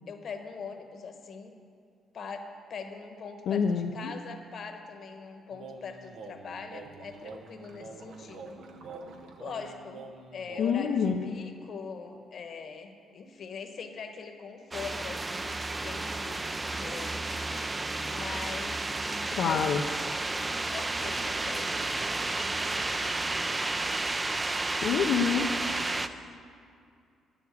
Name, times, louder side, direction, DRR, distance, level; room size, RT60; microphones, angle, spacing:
voice 1, 0.1-1.5 2.1-8.6 9.4-17.4 18.0-18.8 19.3-19.6 20.7-21.7 22.0-22.5 23.3-23.9 25.4-25.9, left 5 dB, 55° left, 6 dB, 1.2 m, -42 dB
voice 2, 3.5-4.1 10.6-11.3 19.3-19.8 24.8-25.5, left 6 dB, 75° left, 1 dB, 0.6 m, -27 dB
sound 1, 5.5-10.7, right 3 dB, 80° right, 1.0 m, -46 dB
sound 2, 14.7-26.1, right 2 dB, 20° right, 0.5 m, -32 dB
11.0 x 7.1 x 8.1 m, 2.4 s
cardioid pair, 90°, 0 cm